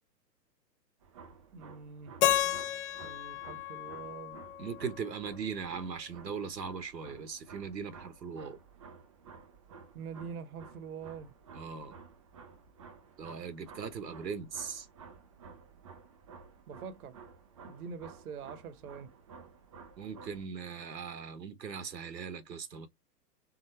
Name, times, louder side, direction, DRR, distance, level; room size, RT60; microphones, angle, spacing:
sound 1, 1.0-20.5, right 5 dB, 25° right, 0.4 m, -53 dB
voice 1, 1.5-2.1 3.0-4.4 9.9-11.3 16.7-17.2 17.6-19.1, right 6 dB, 60° right, 1.0 m, -44 dB
Keyboard (musical), 2.2-5.2, left 12 dB, 45° left, 0.8 m, -32 dB
voice 2, 4.6-8.6 11.5-12.0 13.2-14.9 20.0-22.9, right 6 dB, 85° right, 1.1 m, -39 dB
3.8 x 3.7 x 3.2 m
hypercardioid pair, 120°, 49 cm